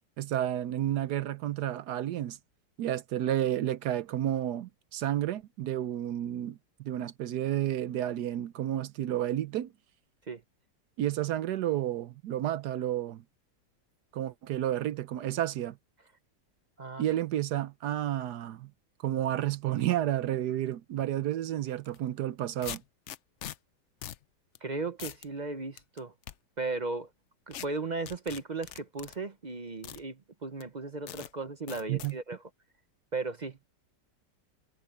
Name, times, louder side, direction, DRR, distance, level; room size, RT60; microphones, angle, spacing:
voice 1, 0.2-2.4 2.8-9.7 11.0-13.2 14.1-15.8 17.0-18.7 19.0-22.8 31.9-32.2, right 12 dB, 70° right, 1.2 m, -31 dB
sound 1, 21.8-22.0 22.6-23.6 24.0-24.2 24.5-24.6 25.0-25.3 25.8-26.3 27.5-27.7 28.1-29.2 29.8-30.0 30.6-30.7 31.1-31.3 31.7-32.1, left 11 dB, 70° left, 0.6 m, -42 dB
voice 2, 24.6-26.1 26.6-27.1 27.5-32.4 33.1-33.6, right 3 dB, 40° right, 0.6 m, -36 dB
omnidirectional pair, 1.9 m